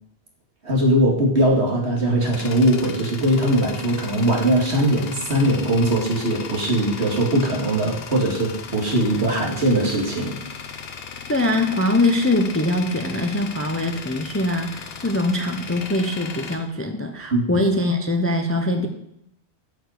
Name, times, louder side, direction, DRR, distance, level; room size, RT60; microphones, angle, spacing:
voice 1, 0.6-10.4 17.3-17.6, right 1 dB, 75° right, -1 dB, 2.4 m, -20 dB
Tools, 1.7-17.6, left 6 dB, 65° left, 1.0 m, -37 dB
voice 2, 11.3-18.9, left 1 dB, 15° left, 5 dB, 0.6 m, -22 dB
7.8 x 5.2 x 6.5 m, 0.78 s
omnidirectional pair, 1.1 m